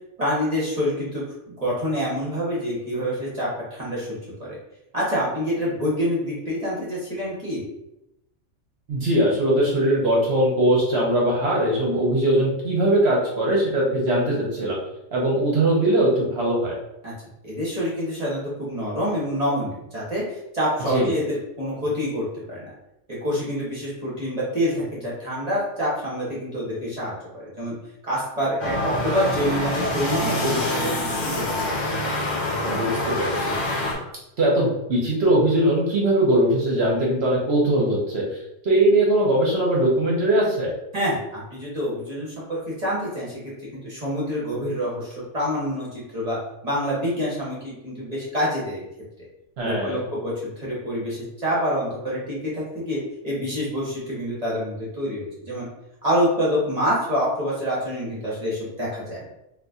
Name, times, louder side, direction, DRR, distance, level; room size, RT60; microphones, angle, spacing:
voice 1, 0.2-4.1 4.4-4.5 4.9-7.6 17.0-17.1 17.4-22.7 23.1-27.7 28.0-31.4 40.9-43.4 43.7-46.4 46.6-48.8 49.6-55.7 56.0-59.2, equal, 35° right, -7 dB, 1.0 m, -27 dB
voice 2, 8.9-14.8 15.1-16.7 20.9-21.1 32.6-32.9 33.2-33.5 34.4-40.7 49.6-50.0, right 1 dB, 60° right, -3 dB, 0.9 m, -21 dB
sound 1, 28.6-33.9, left 1 dB, 45° left, 0.7 m, -26 dB
4.0 x 2.5 x 2.3 m, 0.88 s
omnidirectional pair, 1.3 m